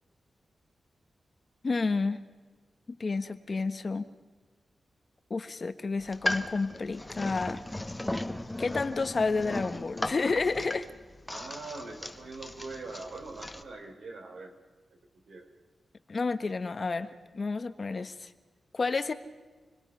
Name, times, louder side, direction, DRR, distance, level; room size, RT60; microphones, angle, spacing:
voice 1, 1.6-2.2 2.9-4.1 5.3-7.6 8.6-10.9 16.1-18.3 18.7-19.1, left 4 dB, 45° left, 10 dB, 1.3 m, -30 dB
sound 1, 6.0-13.6, left 1 dB, 15° left, 1.2 m, -37 dB
voice 2, 11.3-14.6 14.9-15.0 15.3-15.5, right 3 dB, 85° right, 2 dB, 4.5 m, -42 dB
29.0 x 20.5 x 5.7 m, 1.4 s
wide cardioid pair, 100°, 0 cm